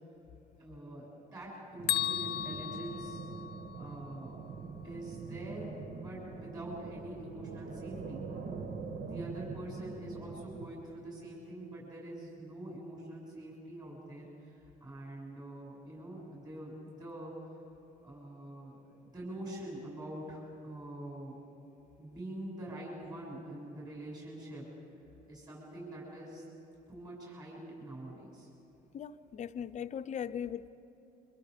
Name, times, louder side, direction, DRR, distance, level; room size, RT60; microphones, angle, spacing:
voice 1, 0.6-3.2 3.8-4.4 4.8-8.2 9.0-17.3 18.0-21.4 22.0-24.6 25.3-26.4 26.9-28.5, right 1 dB, 25° right, -4 dB, 7.1 m, -45 dB
sound 1, 1.8-10.7, right 4 dB, 55° right, 1.3 m, -44 dB
Bell, 1.9-3.9, left 12 dB, 75° left, 0.9 m, -35 dB
voice 2, 28.9-30.7, left 8 dB, 45° left, 11 dB, 0.8 m, -39 dB
27.5 x 25.0 x 5.2 m, 2.8 s
cardioid pair, 110°, 17 cm